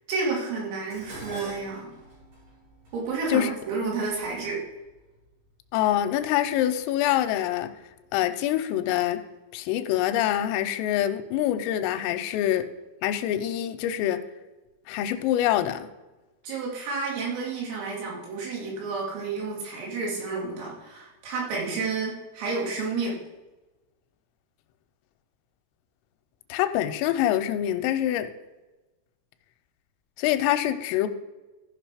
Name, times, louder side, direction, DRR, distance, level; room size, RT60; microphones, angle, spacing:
voice 1, 0.1-1.9 2.9-4.6 12.3-12.4 16.4-23.2, right 4 dB, 80° right, -3 dB, 5.2 m, -30 dB
Dishes pots and pans, 0.9-5.3 6.2-6.6 6.9-8.0, right 1 dB, 45° right, 4.7 m, -45 dB
voice 2, 5.7-7.7 8.1-9.3 9.5-12.7 13.0-14.2 14.9-15.9 26.5-28.3 30.2-31.1, left 12 dB, 85° left, 9 dB, 3.1 m, -25 dB
15.0 x 5.4 x 4.9 m, 1.1 s
omnidirectional pair, 5.9 m